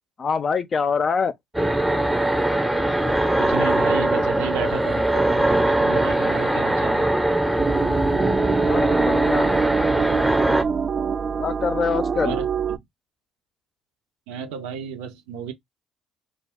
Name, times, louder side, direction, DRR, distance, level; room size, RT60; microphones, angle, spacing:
voice 1, 0.2-1.3 8.6-9.5 11.4-12.4, left 5 dB, 45° left, 0.5 m, -24 dB
sound 1, 1.5-10.6, right 1 dB, 5° right, 0.6 m, -21 dB
voice 2, 3.4-7.1 12.2-12.8 14.3-15.5, right 7 dB, 80° right, 0.6 m, -33 dB
sound 2, 7.6-12.8, right 6 dB, 40° right, 0.3 m, -25 dB
2.3 x 2.3 x 3.4 m
hypercardioid pair, 65°, 0 cm